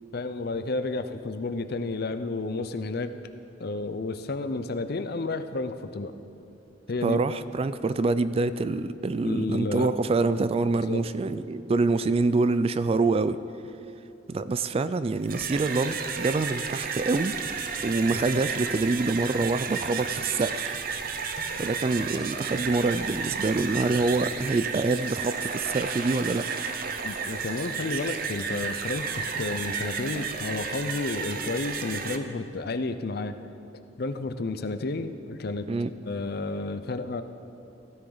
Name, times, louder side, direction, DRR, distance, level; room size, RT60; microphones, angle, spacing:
voice 1, 0.1-3.1 3.6-6.1 6.9-7.2 9.2-9.9 10.7-11.0 27.0-33.4 34.0-35.7 36.1-37.2, left 3 dB, 55° left, 10 dB, 0.6 m, -31 dB
voice 2, 7.0-13.4 14.3-17.4 17.8-20.8 21.5-26.5 35.7-35.9, right 3 dB, 30° right, 13 dB, 0.3 m, -26 dB
sound 1, 15.1-32.2, right 5 dB, 50° right, 0.7 m, -32 dB
sound 2, 17.2-24.2, equal, 40° left, 1.5 m, -50 dB
16.5 x 13.0 x 4.0 m, 2.7 s
head